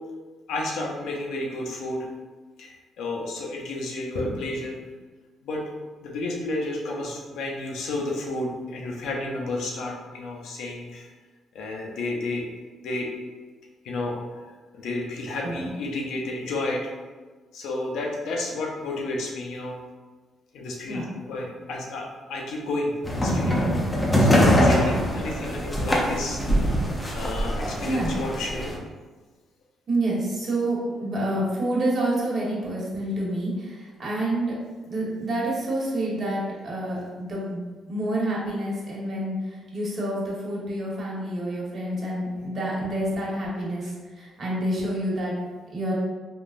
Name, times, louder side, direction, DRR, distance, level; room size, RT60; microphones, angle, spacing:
voice 1, 0.5-2.1 2.6-4.8 5.4-5.6 6.0-11.1 11.5-12.5 12.8-13.1 13.8-14.2 14.7-16.8 17.5-19.8 20.5-23.7 24.2-26.4 27.1-28.7 43.8-43.9, left 2 dB, 80° left, -1 dB, 0.6 m, -31 dB
sound 1, 23.0-28.8, equal, 15° left, 0.6 m, -23 dB
voice 2, 29.9-34.6 34.8-37.6 37.9-39.4 39.7-43.9 44.2-45.3 45.7-45.9, right 1 dB, 50° right, -5 dB, 1.2 m, -28 dB
3.6 x 2.4 x 2.5 m, 1.4 s
cardioid pair, 90°, 0 cm